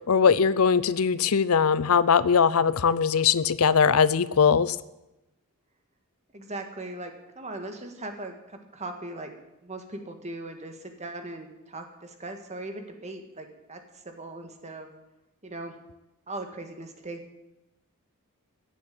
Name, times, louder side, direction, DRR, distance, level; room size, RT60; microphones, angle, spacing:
voice 1, 0.1-4.8, left 6 dB, 75° left, 17 dB, 0.6 m, -21 dB
voice 2, 6.3-9.3 9.6-14.9 15.4-15.7 16.3-17.2, right 2 dB, 30° right, 5 dB, 1.9 m, -39 dB
15.5 x 7.4 x 9.4 m, 0.95 s
head